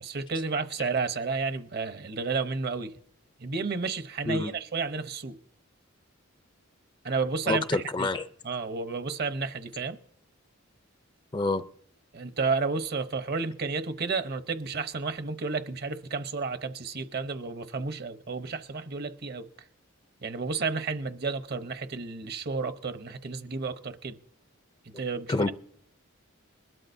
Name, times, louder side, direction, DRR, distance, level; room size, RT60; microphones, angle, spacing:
voice 1, 0.0-2.9 3.4-5.4 7.0-8.1 8.4-10.0 12.1-19.5 20.2-24.2 24.8-25.3, right 4 dB, 50° right, 0.8 m, -31 dB
voice 2, 7.5-8.3 11.3-11.6 25.3-25.5, left 2 dB, 20° left, 0.5 m, -27 dB
21.0 x 12.5 x 2.7 m
head